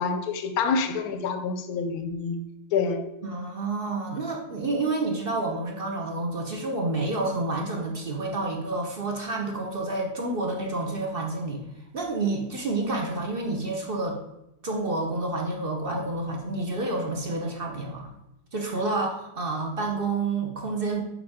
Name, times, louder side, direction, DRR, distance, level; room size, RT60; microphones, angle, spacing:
voice 1, 0.0-2.4 2.7-3.0, left 5 dB, 65° left, 8 dB, 1.0 m, -27 dB
voice 2, 3.2-11.6 11.9-14.2 14.6-18.1 18.5-21.0, right 2 dB, 45° right, 1 dB, 0.7 m, -29 dB
7.1 x 5.0 x 3.6 m, 0.89 s
omnidirectional pair, 2.0 m